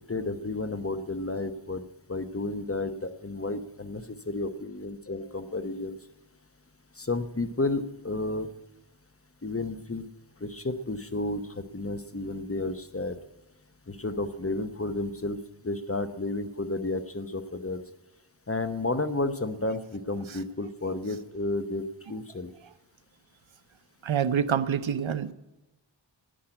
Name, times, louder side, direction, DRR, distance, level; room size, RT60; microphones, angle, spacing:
voice 1, 0.1-6.0 7.0-8.5 9.4-10.0 10.4-13.2 13.9-17.8 18.5-22.5, left 2 dB, 30° left, 10 dB, 0.9 m, -32 dB
voice 2, 24.0-25.3, right 8 dB, 85° right, 12 dB, 0.7 m, -26 dB
10.5 x 10.0 x 9.9 m, 1.1 s
wide cardioid pair, 45°, 46 cm